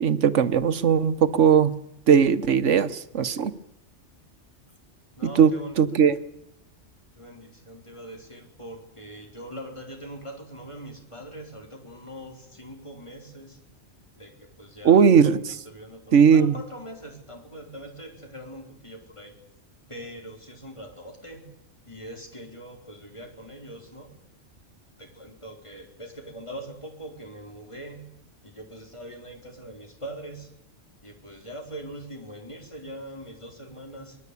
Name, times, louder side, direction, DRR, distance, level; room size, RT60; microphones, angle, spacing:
voice 1, 0.0-1.7 2.1-3.5 5.2-5.5 5.8-6.2 14.8-15.6 16.1-16.5, right 7 dB, 85° right, 12 dB, 1.4 m, -18 dB
voice 2, 5.2-6.1 7.1-13.6 14.1-15.1 15.5-19.3 19.9-21.5 21.9-24.1 25.0-28.1 28.4-30.5 31.0-34.2, right 1 dB, 25° left, 2 dB, 4.4 m, -42 dB
24.5 x 20.5 x 8.5 m, 0.81 s
omnidirectional pair, 1.2 m